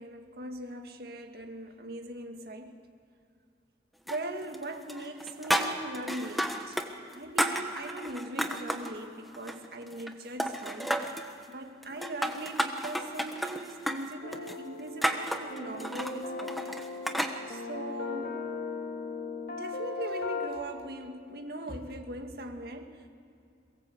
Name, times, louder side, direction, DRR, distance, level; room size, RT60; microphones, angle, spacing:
voice 1, 0.0-2.8 4.1-6.8 7.1-16.8 17.5-18.5 19.5-23.1, right 1 dB, 55° right, 5 dB, 2.0 m, -40 dB
sound 1, 4.1-4.6 4.9-6.9 7.1-8.9 9.3-10.1 10.4-11.3 11.8-17.4, equal, ahead, 1.1 m, -32 dB
sound 2, 14.2-20.5, left 4 dB, 50° left, 2.7 m, -38 dB
22.5 x 18.5 x 8.0 m, 2.5 s
head